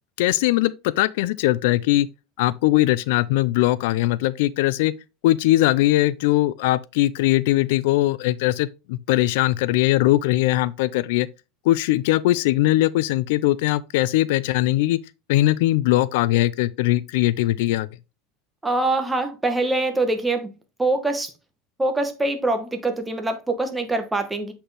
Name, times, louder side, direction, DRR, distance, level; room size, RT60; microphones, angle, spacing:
voice 1, 0.2-2.1 2.4-4.9 5.2-11.3 11.7-15.0 15.3-17.9, left 16 dB, 75° left, 0.3 m, -20 dB
voice 2, 18.6-20.5 20.8-21.3 21.8-24.5, right 2 dB, 10° right, 1.1 m, -24 dB
7.7 x 4.2 x 3.3 m
supercardioid pair, 145°, 0 cm